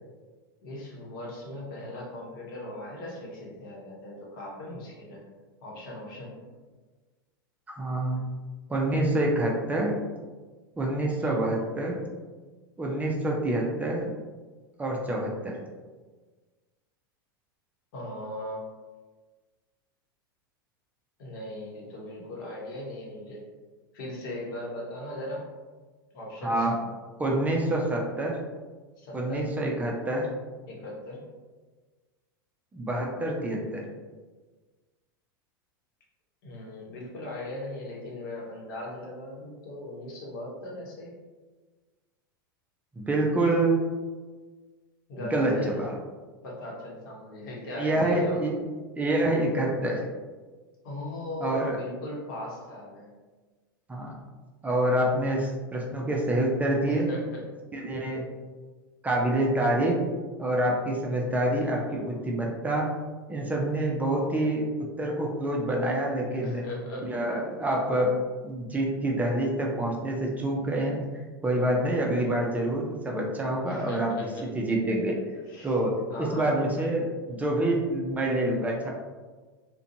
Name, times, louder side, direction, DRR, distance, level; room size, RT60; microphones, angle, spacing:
voice 1, 0.6-5.2 5.6-6.4 11.1-11.4 17.9-18.6 21.2-23.4 23.9-25.5 26.1-26.7 29.0-29.5 30.7-31.3 36.4-41.1 45.1-45.9 46.4-48.4 50.8-53.1 56.9-57.4 66.4-67.2 73.7-74.4 75.5-75.8 76.1-76.8, left 1 dB, 65° left, -3 dB, 0.9 m, -38 dB
voice 2, 7.7-8.2 8.7-9.9 10.8-12.0 12.8-14.1 14.8-15.6 26.4-26.8 27.2-28.4 29.1-30.3 32.7-33.8 43.0-43.8 45.3-45.9 47.7-48.5 49.0-50.0 51.4-51.8 53.9-54.1 54.6-57.1 57.7-58.3 59.0-60.0 60.4-62.9 63.3-64.7 65.0-66.6 67.0-68.2 68.4-71.0 71.4-75.2 75.6-78.9, right 1 dB, 15° right, -1 dB, 0.5 m, -27 dB
2.5 x 2.2 x 2.6 m, 1.3 s
hypercardioid pair, 95°, 12 cm